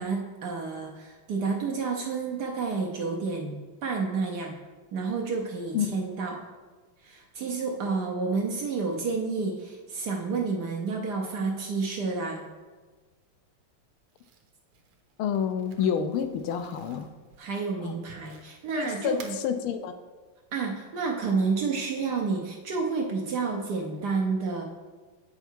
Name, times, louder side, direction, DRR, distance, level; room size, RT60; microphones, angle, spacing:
voice 1, 0.0-4.6 4.9-6.4 7.0-12.5 17.4-19.4 20.5-24.6, right 4 dB, 65° right, 1 dB, 1.1 m, -30 dB
Crumpling crinkling, 14.1-18.7 19.0-19.4, right 6 dB, 90° right, 1.7 m, -52 dB
voice 2, 15.2-17.1 17.8-18.0 18.8-19.9, left 8 dB, 80° left, 8 dB, 1.4 m, -28 dB
8.0 x 5.7 x 4.4 m, 1.4 s
omnidirectional pair, 2.4 m